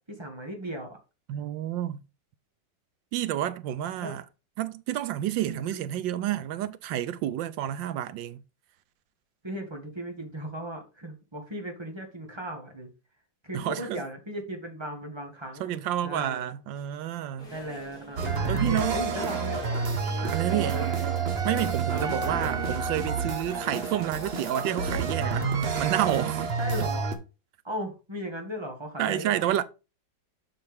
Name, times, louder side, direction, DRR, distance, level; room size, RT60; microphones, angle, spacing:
voice 1, 0.1-1.0 4.0-4.2 5.5-5.8 9.4-12.9 13.4-16.5 17.5-19.7 20.2-21.0 21.9-22.5 24.6-25.5 26.6-27.0 27.6-29.5, equal, 15° right, 1.7 m, -37 dB
voice 2, 1.3-2.0 3.1-4.2 4.6-8.4 13.5-14.0 15.6-17.5 18.5-19.0 20.3-20.8 21.4-25.5 25.8-26.5 29.0-29.6, right 12 dB, 85° right, 1.4 m, -29 dB
sound 1, 17.4-25.6, equal, 45° left, 3.6 m, -43 dB
sound 2, 18.2-27.1, right 5 dB, 40° right, 1.0 m, -29 dB
7.7 x 5.9 x 3.5 m
omnidirectional pair, 2.0 m